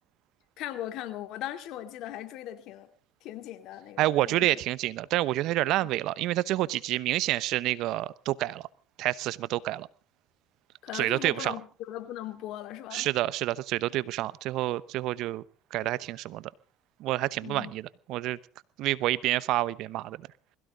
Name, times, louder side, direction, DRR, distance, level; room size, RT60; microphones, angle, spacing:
voice 1, 0.6-2.9 3.2-4.5 10.8-13.1 17.4-17.7, left 12 dB, 65° left, 9 dB, 2.4 m, -39 dB
voice 2, 4.0-8.7 9.0-9.9 10.9-11.5 12.9-15.4 15.7-16.5 17.0-18.4 18.8-20.3, right 15 dB, 65° right, 19 dB, 0.9 m, -28 dB
22.0 x 16.0 x 3.9 m, 0.37 s
supercardioid pair, 95°, 0 cm